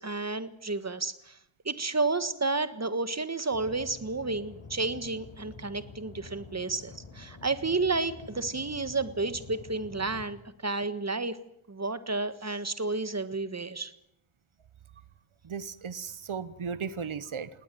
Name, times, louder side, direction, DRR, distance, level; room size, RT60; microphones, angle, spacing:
voice 1, 0.0-1.4 1.6-11.4 11.7-13.9, right 3 dB, 35° right, 13 dB, 1.6 m, -31 dB
sound 1, 3.5-10.3, left 4 dB, 90° left, 3.9 m, -48 dB
voice 2, 15.4-17.5, right 6 dB, 80° right, 15 dB, 1.1 m, -36 dB
19.5 x 19.0 x 9.2 m, 0.79 s
wide cardioid pair, 90°, 48 cm